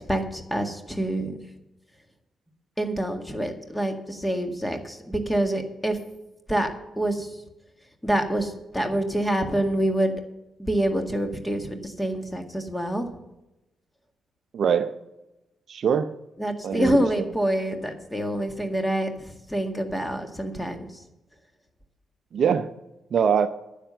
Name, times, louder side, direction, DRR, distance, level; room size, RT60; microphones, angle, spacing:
voice 1, 0.0-1.4 2.8-6.0 6.5-6.7 7.0-7.3 8.0-10.1 10.6-13.1 16.4-20.9, right 1 dB, 10° left, 6 dB, 1.9 m, -26 dB
voice 2, 14.5-14.9 15.7-16.1 16.6-17.0 22.3-22.7 23.1-23.5, right 7 dB, 55° right, 11 dB, 0.6 m, -22 dB
10.0 x 7.3 x 7.9 m, 0.96 s
hypercardioid pair, 40°, 0 cm